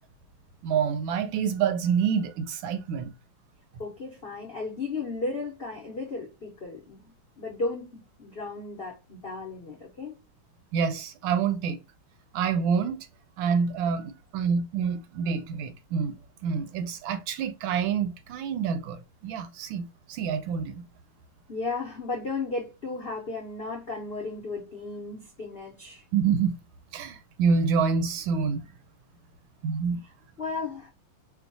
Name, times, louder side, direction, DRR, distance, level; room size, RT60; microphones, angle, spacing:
voice 1, 0.6-3.1 10.7-11.8 12.3-13.1 13.4-16.1 16.4-20.8 26.1-26.6 26.9-28.6 29.6-30.0, right 6 dB, 75° right, 1.2 m, -27 dB
voice 2, 3.8-7.0 7.4-7.9 8.2-10.2 21.5-26.0 30.4-30.9, left 3 dB, 90° left, 0.5 m, -34 dB
4.4 x 2.3 x 2.6 m
omnidirectional pair, 2.4 m